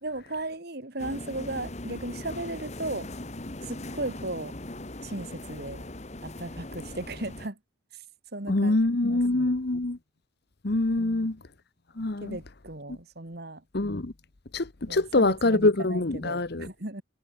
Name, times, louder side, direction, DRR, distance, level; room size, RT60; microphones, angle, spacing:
voice 1, 0.0-3.1 3.6-4.5 5.0-5.8 6.2-7.6 8.3-8.8 9.1-9.6 11.0-11.3 12.2-13.6 14.9-17.0, right 2 dB, 50° right, 2.2 m, -36 dB
sound 1, 1.0-7.5, left 1 dB, 35° left, 1.7 m, -39 dB
voice 2, 8.5-10.0 10.6-11.4 12.0-12.4 13.7-14.1 14.5-16.7, left 2 dB, 50° left, 1.0 m, -25 dB
head